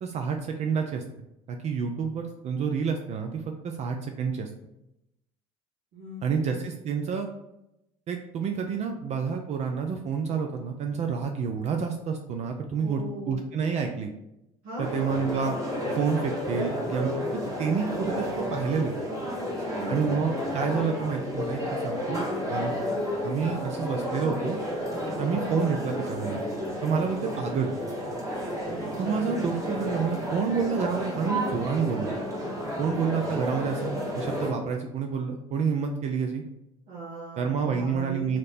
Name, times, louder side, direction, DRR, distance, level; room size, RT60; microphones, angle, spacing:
voice 1, 0.0-1.0 1.5-4.5 6.2-7.3 8.1-13.0 13.3-14.1 14.8-15.5 15.9-18.9 19.9-22.2 22.5-22.7 23.2-24.6 25.2-26.4 26.8-27.7 29.0-32.1 32.8-36.4 37.4-38.4, right 6 dB, 45° right, 4 dB, 0.5 m, -29 dB
voice 2, 5.9-6.6 12.8-13.4 14.6-15.4 19.2-20.1 24.9-25.2 28.7-28.8 29.0-29.4 36.9-38.3, right 2 dB, 70° right, -8 dB, 1.4 m, -39 dB
sound 1, 14.8-34.5, equal, 20° right, 1.5 m, -31 dB
3.1 x 2.9 x 4.0 m, 0.87 s
hypercardioid pair, 75°, 16 cm